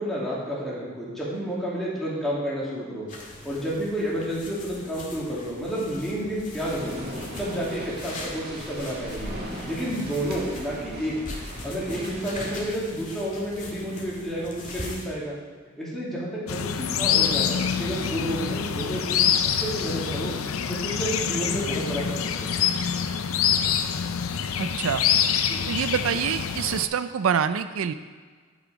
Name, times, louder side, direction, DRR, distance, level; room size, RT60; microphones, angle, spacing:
voice 1, 0.0-3.1 3.4-6.9 7.4-9.3 9.6-11.1 11.6-15.3 15.8-19.3 19.6-20.3 20.7-22.5 25.5-25.6, equal, ahead, -7 dB, 2.6 m, -30 dB
sound 1, 3.1-15.1, left 1 dB, 40° left, 1.8 m, -41 dB
sound 2, 6.7-12.6, equal, 50° right, 1.9 m, -38 dB
sound 3, 16.5-26.9, left 8 dB, 90° left, 0.5 m, -26 dB
voice 2, 24.6-25.0 25.7-27.9, right 7 dB, 85° right, 11 dB, 0.4 m, -26 dB
10.5 x 6.2 x 5.1 m, 1.5 s
head